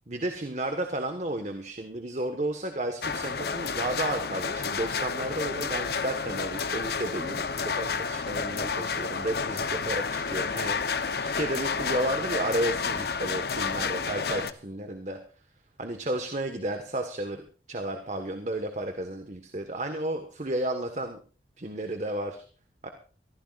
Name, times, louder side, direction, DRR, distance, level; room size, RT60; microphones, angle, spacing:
voice 1, 0.1-15.2 15.8-21.2 21.6-22.4 22.8-22.9, right 1 dB, 40° right, 6 dB, 1.5 m, -32 dB
sound 1, 3.0-14.5, left 5 dB, 60° left, 0.8 m, -30 dB
23.5 x 15.0 x 2.5 m, 0.39 s
head